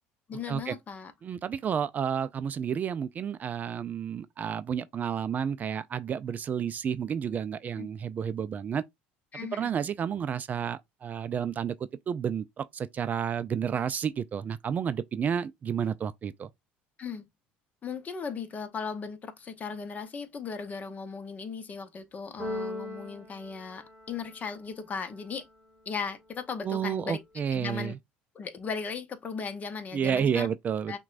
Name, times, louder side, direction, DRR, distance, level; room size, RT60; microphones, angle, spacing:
voice 1, 0.3-1.1 7.8-7.9 9.3-9.7 17.0-17.2 17.8-25.5 25.9-27.2 27.5-28.0 28.3-30.5 30.9-31.0, left 5 dB, 35° left, 0.7 m, -37 dB
voice 2, 1.2-8.8 9.5-11.7 12.1-16.5 26.6-28.0 29.9-31.0, right 8 dB, 35° right, 0.3 m, -31 dB
Keyboard (musical), 22.4-24.5, left 1 dB, 15° right, 1.3 m, -39 dB
5.9 x 2.2 x 2.5 m
supercardioid pair, 90°, 5 cm